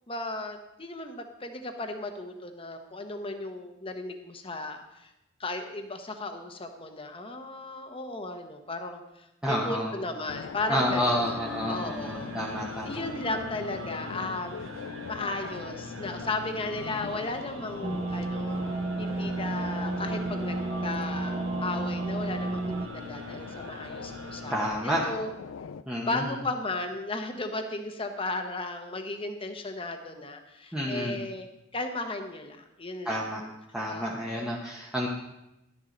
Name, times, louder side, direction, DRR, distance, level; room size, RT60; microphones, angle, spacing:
voice 1, 0.1-5.1 5.4-11.3 11.7-12.3 12.9-14.7 15.1-18.6 19.0-24.6 24.8-25.3 26.0-33.2 33.8-34.5, left 2 dB, 25° left, 6 dB, 1.0 m, -35 dB
voice 2, 9.4-10.0 10.7-13.1 24.5-25.0 25.9-26.3 30.7-31.2 33.0-33.4 33.7-35.1, equal, 5° right, -4 dB, 1.0 m, -29 dB
sound 1, 10.3-25.8, left 5 dB, 75° left, 0.4 m, -41 dB
sound 2, 10.5-24.7, equal, 75° right, 1.7 m, -43 dB
sound 3, 17.8-22.9, right 3 dB, 25° right, 0.5 m, -32 dB
12.0 x 9.8 x 3.9 m, 0.91 s
head